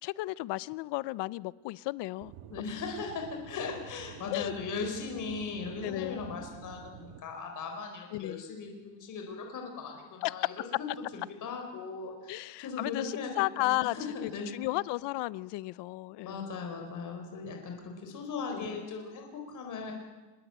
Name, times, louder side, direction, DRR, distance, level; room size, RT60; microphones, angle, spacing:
voice 1, 0.0-2.3 4.3-4.5 5.8-6.2 8.1-8.4 10.2-10.3 12.3-14.0 14.2-16.4 18.5-18.7, left 20 dB, 60° left, 20 dB, 0.8 m, -34 dB
Aircraft / Engine, 2.2-7.2, right 10 dB, 80° right, 1.7 m, -49 dB
voice 2, 2.5-10.9 11.1-13.3 13.6-14.5 16.2-19.9, left 5 dB, 40° left, 3 dB, 4.5 m, -38 dB
26.0 x 21.5 x 8.9 m, 1.2 s
cardioid pair, 145°, 46 cm